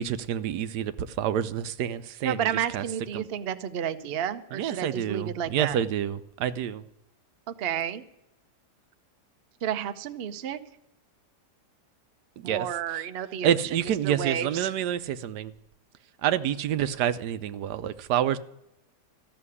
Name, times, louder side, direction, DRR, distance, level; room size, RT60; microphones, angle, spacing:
voice 1, 0.0-2.5 2.7-2.8 3.1-3.3 4.5-6.8 12.4-13.0 13.4-15.5 16.2-18.4, right 10 dB, 85° right, 1.2 m, -28 dB
voice 2, 2.2-5.8 7.6-8.0 9.6-10.6 12.4-13.6 14.0-14.7, right 9 dB, 50° right, 0.8 m, -31 dB
14.5 x 6.7 x 9.6 m
omnidirectional pair, 1.7 m